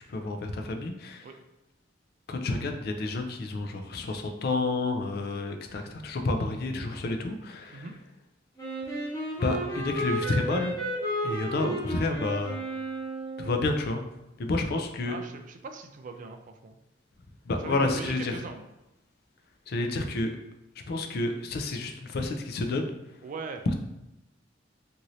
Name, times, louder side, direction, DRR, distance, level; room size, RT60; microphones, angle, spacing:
voice 1, 0.1-1.3 2.3-7.9 9.4-10.8 11.2-12.6 13.4-14.0 14.4-15.2 17.5-18.4 19.7-20.3 20.9-22.9 23.7-23.8, left 2 dB, 55° left, 5 dB, 0.4 m, -30 dB
Wind instrument woodwind instrument, 8.6-13.7, right 1 dB, 15° left, 1.1 m, -33 dB
voice 2, 15.1-16.8 17.6-18.6 23.2-23.7, right 4 dB, 45° right, 7 dB, 0.3 m, -40 dB
2.7 x 2.6 x 3.0 m, 0.91 s
head